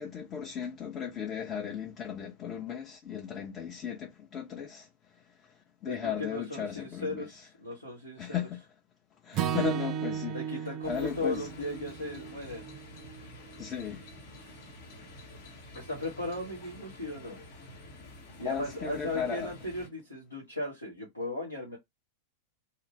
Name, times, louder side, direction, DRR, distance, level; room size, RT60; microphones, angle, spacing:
voice 1, 0.0-4.9 5.4-5.5 5.8-7.2 8.2-8.6 9.2-10.4 10.8-11.4 13.6-14.0 18.4-19.5, left 8 dB, 30° left, 0.7 m, -36 dB
voice 2, 5.8-8.4 10.3-12.6 14.4-14.5 15.7-17.4 18.4-21.8, left 2 dB, 85° left, 1.2 m, -37 dB
Acoustic guitar / Strum, 9.3-13.6, right 9 dB, 40° right, 0.4 m, -35 dB
sound 1, 10.8-19.9, left 1 dB, 55° left, 1.0 m, -49 dB
2.9 x 2.4 x 3.2 m
figure-of-eight pair, 90°, 0 cm